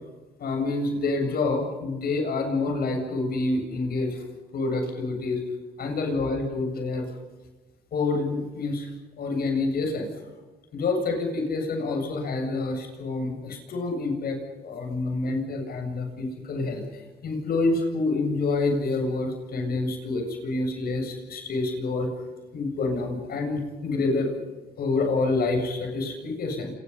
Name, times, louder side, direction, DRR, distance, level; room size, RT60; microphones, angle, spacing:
voice 1, 0.4-4.2 4.5-5.4 5.8-7.1 7.9-8.9 9.2-10.1 10.7-14.4 14.6-22.1 22.5-24.3 24.8-26.7, left 3 dB, 60° left, 4 dB, 7.8 m, -27 dB
28.5 x 27.5 x 5.8 m, 1.2 s
cardioid pair, 90°, 18 cm